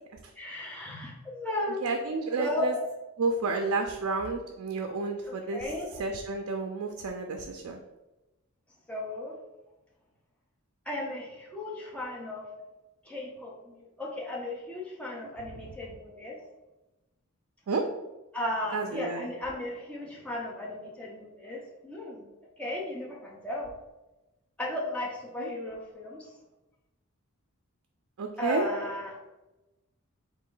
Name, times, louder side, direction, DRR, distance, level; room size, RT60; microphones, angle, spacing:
voice 1, 0.4-1.9 2.3-2.8 5.3-6.0 8.9-9.4 10.9-12.4 13.1-16.4 18.3-22.3 22.6-23.7 24.6-26.3 28.4-29.2, left 1 dB, 5° left, -3 dB, 0.6 m, -35 dB
voice 2, 1.8-2.7 3.2-5.7 6.0-7.8 17.7-17.8 18.7-19.3 25.4-25.5 28.2-28.7, right 3 dB, 75° right, 3 dB, 0.4 m, -31 dB
4.2 x 2.6 x 3.7 m, 1.0 s
head